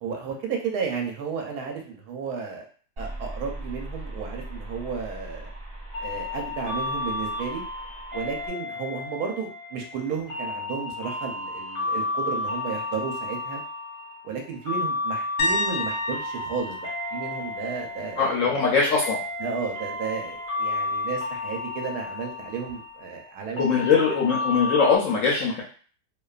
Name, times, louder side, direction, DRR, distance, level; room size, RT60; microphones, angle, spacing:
voice 1, 0.0-2.7 3.0-5.5 6.0-7.6 8.1-13.6 14.2-18.6 19.4-23.6, right 6 dB, 75° right, 1 dB, 1.0 m, -33 dB
sound 1, 3.0-8.5, right 1 dB, 40° right, 1.0 m, -39 dB
sound 2, 5.9-25.0, left 3 dB, 20° left, 0.6 m, -32 dB
sound 3, 15.4-19.1 19.5-19.8 22.7-22.8, left 1 dB, 90° left, 1.2 m, -32 dB
voice 2, 18.2-19.2 23.6-25.6, left 5 dB, 70° left, -3 dB, 0.8 m, -21 dB
2.7 x 2.2 x 2.3 m, 0.43 s
omnidirectional pair, 1.7 m